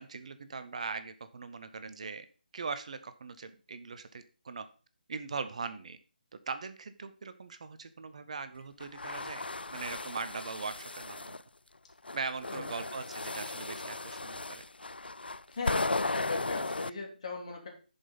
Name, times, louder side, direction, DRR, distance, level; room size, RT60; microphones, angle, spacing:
voice 1, 0.0-2.3 2.5-4.7 5.1-6.0 6.5-11.4 12.1-14.6, right 4 dB, 45° right, 11 dB, 0.6 m, -40 dB
sound 1, 8.8-11.4 12.0-16.9, left 3 dB, 80° left, 0.4 m, -36 dB
voice 2, 15.5-17.7, left 4 dB, 40° left, 1 dB, 2.7 m, -38 dB
10.5 x 5.2 x 4.0 m, 0.36 s
figure-of-eight pair, 150°, 5 cm